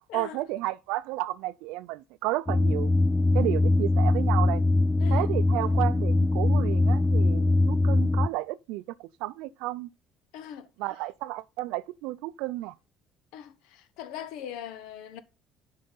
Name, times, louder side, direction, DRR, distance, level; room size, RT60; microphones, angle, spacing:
voice 1, 0.1-2.9 3.3-4.6 5.1-9.9 10.8-12.7, right 18 dB, 85° right, 0.4 m, -32 dB
sound 1, 2.5-8.3, left 2 dB, 10° left, 0.3 m, -22 dB
voice 2, 10.3-10.7 13.3-15.2, left 10 dB, 80° left, 0.8 m, -40 dB
10.5 x 5.6 x 3.9 m
supercardioid pair, 90°, 0 cm